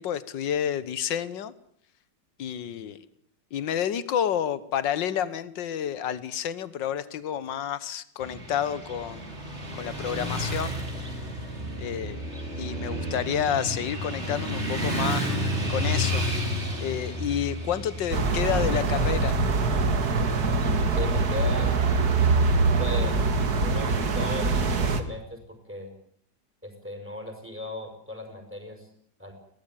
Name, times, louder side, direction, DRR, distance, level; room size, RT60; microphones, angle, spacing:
voice 1, 0.0-1.5 2.4-3.0 3.5-9.3 9.8-10.8 11.8-12.2 12.6-15.4 15.7-16.4 16.8-19.4, left 9 dB, 80° left, 16 dB, 1.8 m, -30 dB
Motorcycle / Traffic noise roadway noise, 8.2-22.3, equal, 35° right, 4.7 m, -32 dB
sound 1, 18.1-25.0, right 3 dB, 60° right, 2.2 m, -24 dB
voice 2, 21.0-21.8 22.8-23.3 23.6-25.9 26.6-28.9 29.2-29.3, left 1 dB, 5° right, 5 dB, 5.5 m, -37 dB
22.5 x 17.5 x 9.2 m, 0.65 s
omnidirectional pair, 1.9 m